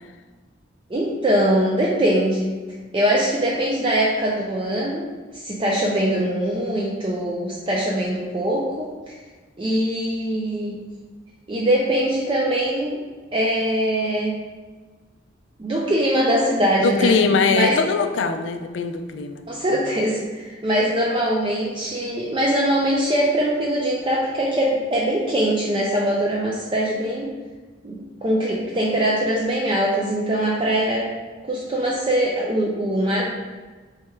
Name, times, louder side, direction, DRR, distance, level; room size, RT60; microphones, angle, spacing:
voice 1, 0.9-2.5 2.9-5.1 5.3-9.1 9.6-10.8 11.5-13.0 13.3-14.3 15.6-17.2 17.5-17.8 19.5-27.3 27.8-31.1 31.5-33.3, right 1 dB, 25° right, -3 dB, 0.4 m, -22 dB
voice 2, 16.8-19.4, left 4 dB, 80° left, 8 dB, 0.4 m, -21 dB
3.4 x 3.3 x 4.4 m, 1.4 s
head